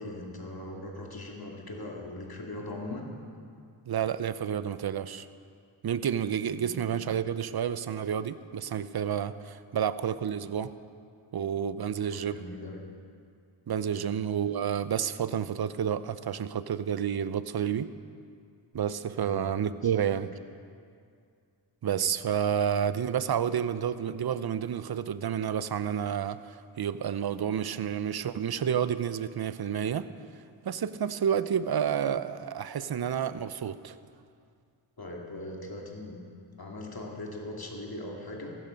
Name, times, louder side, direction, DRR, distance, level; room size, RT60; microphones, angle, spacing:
voice 1, 0.0-3.0 6.5-6.8 12.1-12.8 13.9-14.1 19.2-19.4 19.8-19.9 20.2-20.3 35.0-36.2 36.6-38.6, left 1 dB, 45° left, 0 dB, 2.6 m, -40 dB
voice 2, 3.9-5.3 5.8-10.7 11.3-12.4 13.7-17.9 18.7-20.3 21.8-26.4 26.8-30.1 30.6-34.0, right 8 dB, 50° right, 14 dB, 0.7 m, -30 dB
15.0 x 12.5 x 5.2 m, 2.3 s
cardioid pair, 40°, 49 cm